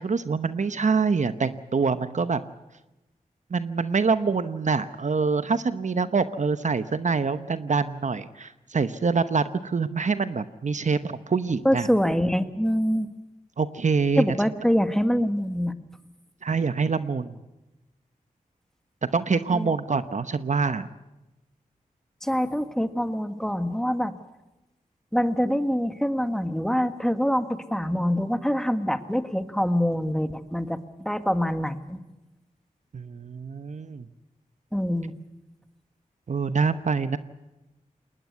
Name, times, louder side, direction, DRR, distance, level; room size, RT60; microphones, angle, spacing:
voice 1, 0.0-2.4 3.5-11.9 13.6-14.3 16.4-17.4 19.1-20.9 32.9-34.1 36.3-37.2, right 5 dB, 55° right, 12 dB, 0.9 m, -25 dB
voice 2, 11.7-13.1 14.2-15.7 19.5-19.7 22.2-24.2 25.1-32.0 34.7-35.1, equal, 5° left, 9 dB, 1.6 m, -25 dB
21.0 x 19.0 x 8.3 m, 0.99 s
cardioid pair, 50°, 15 cm